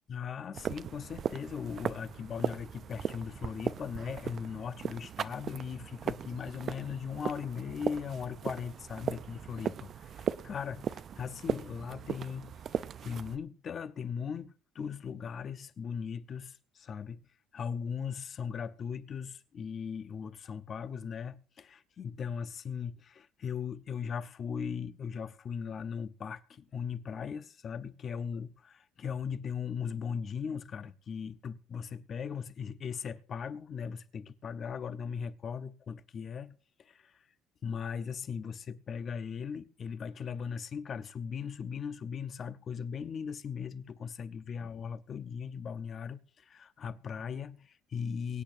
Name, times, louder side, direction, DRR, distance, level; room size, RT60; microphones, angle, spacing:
voice 1, 0.1-17.2 17.5-37.1 37.6-48.4, left 6 dB, 40° left, 0.8 m, -38 dB
sound 1, 0.5-13.4, right 8 dB, 45° right, 0.5 m, -38 dB
23.5 x 8.7 x 2.6 m
cardioid pair, 115°, 0 cm